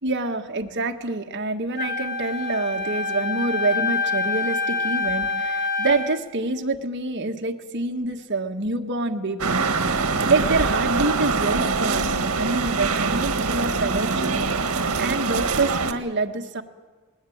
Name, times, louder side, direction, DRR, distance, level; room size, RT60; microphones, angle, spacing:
voice 1, 0.0-9.6 10.3-14.4 15.0-16.6, right 3 dB, 55° right, 3 dB, 1.6 m, -26 dB
Wind instrument woodwind instrument, 1.8-6.2, left 4 dB, 45° left, 1.8 m, -26 dB
sound 1, 9.4-15.9, right 4 dB, 80° right, 1.6 m, -24 dB
20.5 x 18.5 x 8.8 m, 1.3 s
head